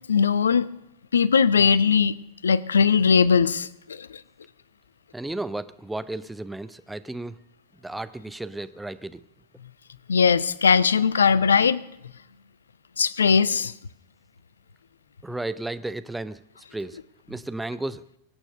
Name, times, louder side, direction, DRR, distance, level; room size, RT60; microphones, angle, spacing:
voice 1, 0.1-0.7 1.1-2.2 2.4-4.2 10.1-11.8 13.0-13.7, left 6 dB, 70° left, 19 dB, 0.7 m, -20 dB
voice 2, 5.1-7.4 7.8-9.2 15.2-16.4 16.7-17.0 17.3-18.1, right 2 dB, 5° right, 13 dB, 0.9 m, -33 dB
23.5 x 9.1 x 6.6 m, 0.83 s
figure-of-eight pair, 90°, 0 cm